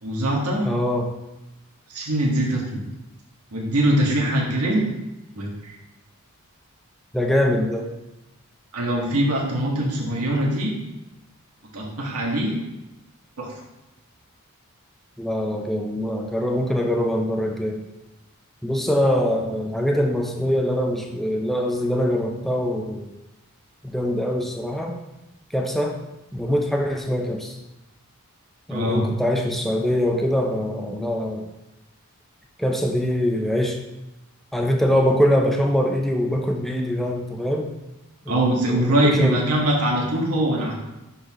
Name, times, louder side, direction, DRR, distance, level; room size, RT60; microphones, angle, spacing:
voice 1, 0.0-0.7 1.9-2.8 3.5-4.9 5.4-5.7 8.7-10.7 11.7-12.5 13.4-13.5 28.7-29.0 38.3-40.7, right 1 dB, 80° right, -2 dB, 1.6 m, -22 dB
voice 2, 0.6-1.1 7.1-7.9 15.2-17.8 18.6-23.1 23.8-25.0 25.5-26.0 26.3-27.6 28.7-31.5 32.6-33.8 34.5-37.7 38.3-39.5, equal, ahead, 1 dB, 0.5 m, -23 dB
10.0 x 4.2 x 3.0 m, 0.97 s
head